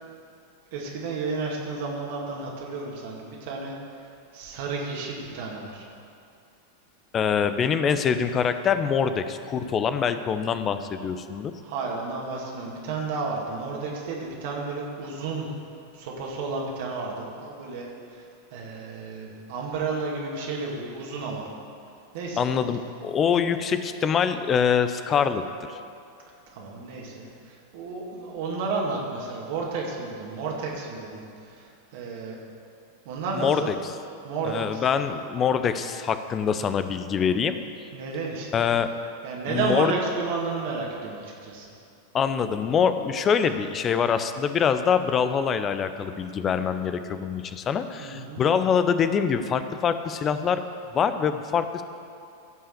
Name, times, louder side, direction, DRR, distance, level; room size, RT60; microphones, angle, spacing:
voice 1, 0.7-4.1 4.3-5.9 11.6-15.5 15.9-21.5 22.1-22.5 26.5-32.4 33.1-33.7 34.2-34.9 37.9-38.7 39.2-41.7 48.0-48.4, right 4 dB, 50° right, -2 dB, 2.1 m, -32 dB
voice 2, 7.1-11.5 22.4-25.8 33.4-33.7 34.5-37.6 38.5-38.9 39.5-39.9 42.1-50.6 50.9-51.8, left 7 dB, 25° left, 11 dB, 0.7 m, -24 dB
15.5 x 5.7 x 6.8 m, 2.5 s
figure-of-eight pair, 90°, 0 cm